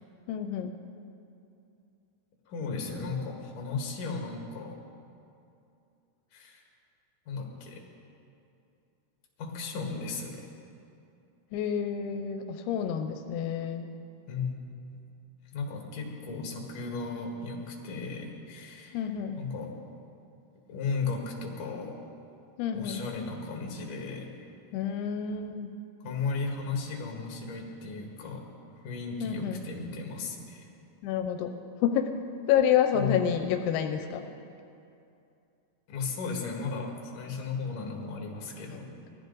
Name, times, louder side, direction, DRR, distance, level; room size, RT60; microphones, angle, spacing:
voice 1, 0.3-0.7 11.5-13.9 18.9-19.4 22.6-23.0 24.7-25.7 29.2-29.6 31.0-31.5 31.8-32.1 32.5-34.3, left 9 dB, 90° left, 6 dB, 2.7 m, -28 dB
voice 2, 2.5-4.8 6.3-6.6 7.3-7.8 9.4-10.5 14.3-14.6 15.5-19.0 19.3-19.7 20.7-21.9 22.7-24.3 26.0-28.5 28.8-30.7 32.9-33.1 35.9-39.0, left 4 dB, 60° left, 0 dB, 3.1 m, -35 dB
20.5 x 13.5 x 3.9 m, 2.6 s
omnidirectional pair, 4.5 m